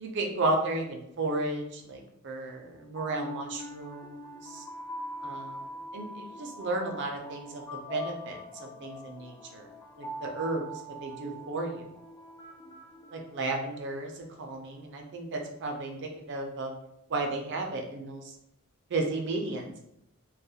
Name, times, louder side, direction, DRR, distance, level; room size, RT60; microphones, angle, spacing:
voice 1, 0.0-4.6 5.2-5.6 5.9-7.6 7.9-9.7 10.0-10.6 11.0-11.8 13.1-14.1 14.4-16.0 16.3-16.7 17.1-18.2 18.9-19.8, right 2 dB, 55° right, 2 dB, 0.5 m, -33 dB
sound 1, 2.7-13.8, equal, 20° left, 0.4 m, -43 dB
2.3 x 2.1 x 2.7 m, 0.78 s
head